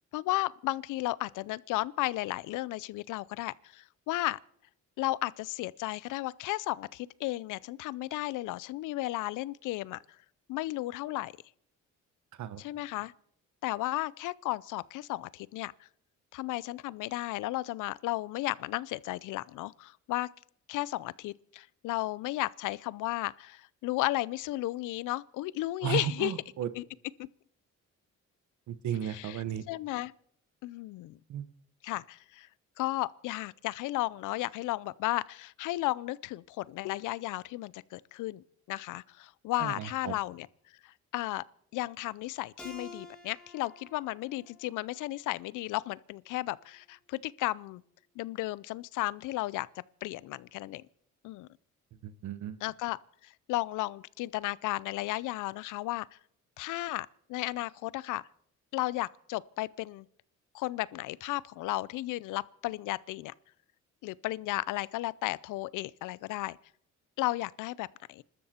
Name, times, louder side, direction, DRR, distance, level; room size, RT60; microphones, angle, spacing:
voice 1, 0.1-4.4 5.0-10.0 10.5-11.3 12.6-13.1 13.6-15.7 16.3-20.3 20.7-26.3 26.7-26.8 27.2-27.3 29.0-30.1 30.6-31.2 31.8-32.5 32.8-40.5 40.8-41.4 41.7-47.8 48.2-49.7 50.0-50.8 51.2-51.5 52.6-56.1 56.6-58.2 58.7-60.1 60.5-63.3 64.0-66.6 67.2-68.2, left 18 dB, 90° left, 0.5 m, -34 dB
voice 2, 25.8-26.7 28.7-29.6 31.3-31.5 39.6-40.1 52.0-52.6, right 10 dB, 70° right, 1.1 m, -34 dB
Keyboard (musical), 42.6-45.8, left 2 dB, 5° left, 3.8 m, -51 dB
25.0 x 13.0 x 4.3 m
cardioid pair, 90°, 30 cm